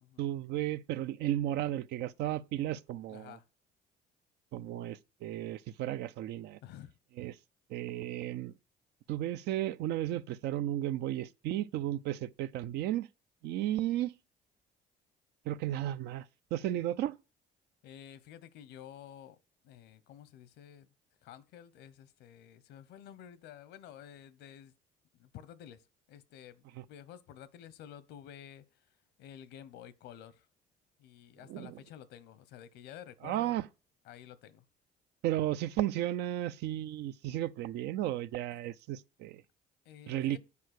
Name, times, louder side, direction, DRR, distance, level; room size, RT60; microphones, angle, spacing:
voice 1, 0.2-3.4 4.5-6.6 7.2-7.3 7.7-8.5 9.1-13.1 13.4-14.1 15.4-16.3 16.5-17.2 31.5-31.8 33.2-33.7 35.2-39.4 40.1-40.4, right 13 dB, 80° right, 0.5 m, -34 dB
voice 2, 3.1-3.5 6.6-6.9 17.8-19.4 19.6-20.9 21.2-24.7 25.1-28.9 29.2-30.5 31.0-33.6 34.0-34.6 39.8-40.4, left 10 dB, 85° left, 0.9 m, -51 dB
8.6 x 4.7 x 6.5 m
cardioid pair, 110°, 17 cm